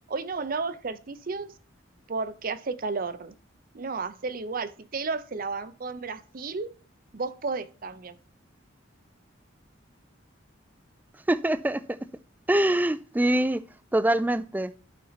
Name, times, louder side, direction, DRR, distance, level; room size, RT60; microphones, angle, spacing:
voice 1, 0.1-1.5 2.1-3.3 3.7-6.7 7.1-8.2, right 4 dB, 45° right, 0.6 m, -32 dB
voice 2, 11.3-12.0 12.5-13.6 13.9-14.7, right 1 dB, 10° right, 0.3 m, -24 dB
12.5 x 4.4 x 4.0 m
head